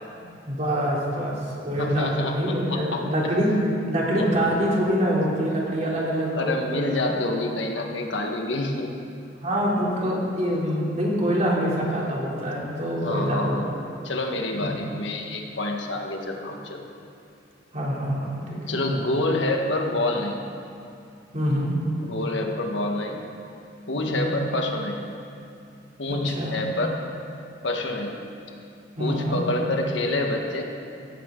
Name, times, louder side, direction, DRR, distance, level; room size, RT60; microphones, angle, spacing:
voice 1, 0.1-3.5 3.9-7.2 9.4-13.6 14.6-14.8 17.7-18.8 21.3-21.7 23.9-24.3 26.1-26.6 29.0-29.4, equal, 40° right, -5 dB, 3.3 m, -25 dB
voice 2, 1.7-3.0 4.1-4.4 6.3-8.9 13.0-13.7 14.0-16.8 18.7-20.4 22.0-23.2 23.9-25.1 26.0-27.0 27.6-28.2 29.0-30.6, left 2 dB, 75° left, 2 dB, 1.6 m, -27 dB
16.0 x 15.5 x 3.9 m, 2.5 s
head